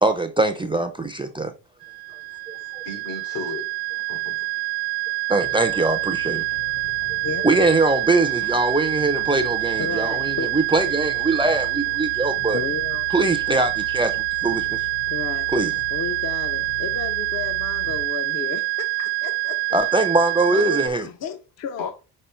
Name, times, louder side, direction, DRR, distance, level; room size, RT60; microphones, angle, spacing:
voice 1, 0.0-1.5 5.3-6.4 7.4-12.6 13.1-14.9 15.5-15.7 19.7-21.1, right 2 dB, 10° right, 0.5 m, -22 dB
sound 1, 1.8-20.9, right 22 dB, 80° right, 0.5 m, -26 dB
voice 2, 2.3-3.7 4.1-4.5 21.8-21.9, left 3 dB, 80° left, 3.3 m, -35 dB
sound 2, 5.4-18.1, left 3 dB, 60° left, 1.6 m, -40 dB
voice 3, 9.8-10.5 12.5-13.6 15.1-15.5 15.9-19.6 20.5-21.9, left 5 dB, 35° left, 0.6 m, -33 dB
5.5 x 4.1 x 4.4 m
cardioid pair, 120°, 47 cm